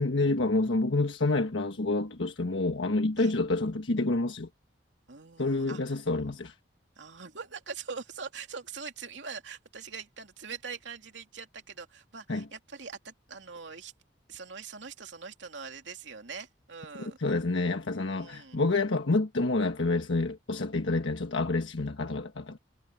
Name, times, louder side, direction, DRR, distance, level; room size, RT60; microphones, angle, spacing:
voice 1, 0.0-4.5 5.4-6.5 12.3-12.4 17.2-22.6, left 2 dB, 90° left, 1.4 m, -28 dB
voice 2, 5.1-6.4 7.0-13.9 14.3-17.2 18.1-18.6, right 5 dB, 75° right, 2.9 m, -43 dB
head